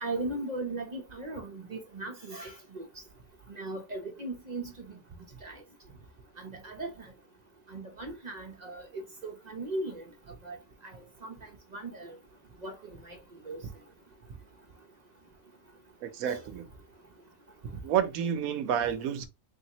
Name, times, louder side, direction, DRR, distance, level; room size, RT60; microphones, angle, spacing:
voice 1, 0.0-2.8 3.6-5.0 5.4-5.5 6.4-6.9 7.7-10.1 10.4-10.6 11.2-11.3 11.7-12.1 12.6-12.7 13.1-13.2 13.5-13.6 16.3-16.4, right 2 dB, 45° right, 0.6 m, -37 dB
voice 2, 16.0-16.7 17.8-19.3, right 9 dB, 80° right, 1.1 m, -29 dB
3.5 x 2.7 x 2.8 m
omnidirectional pair, 1.5 m